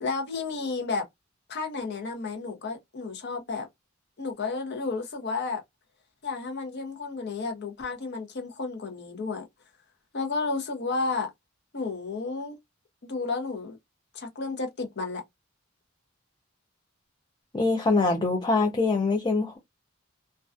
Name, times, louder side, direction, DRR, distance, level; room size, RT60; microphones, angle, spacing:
voice 1, 0.0-1.0 1.5-3.7 4.2-5.6 6.2-9.4 10.1-11.3 11.7-12.6 13.0-13.8 14.1-15.2, left 4 dB, 55° left, 0.7 m, -32 dB
voice 2, 17.5-19.6, left 3 dB, 20° left, 0.4 m, -24 dB
2.3 x 2.2 x 2.4 m
head